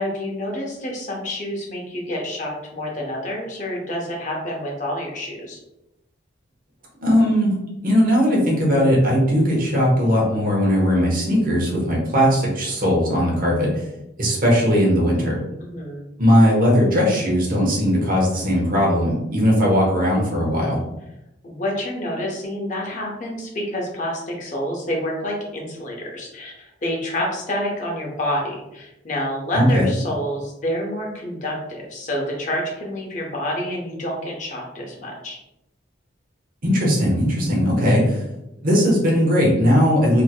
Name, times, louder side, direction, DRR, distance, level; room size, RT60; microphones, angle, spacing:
voice 1, 0.0-5.6 15.6-16.0 21.4-35.4, left 1 dB, 40° left, -1 dB, 0.8 m, -28 dB
voice 2, 7.0-7.6 7.8-13.9 14.2-15.4 16.2-20.8 29.5-29.9 36.6-38.2 38.6-40.2, equal, 45° right, -3 dB, 1.0 m, -18 dB
3.5 x 2.8 x 2.2 m, 0.90 s
head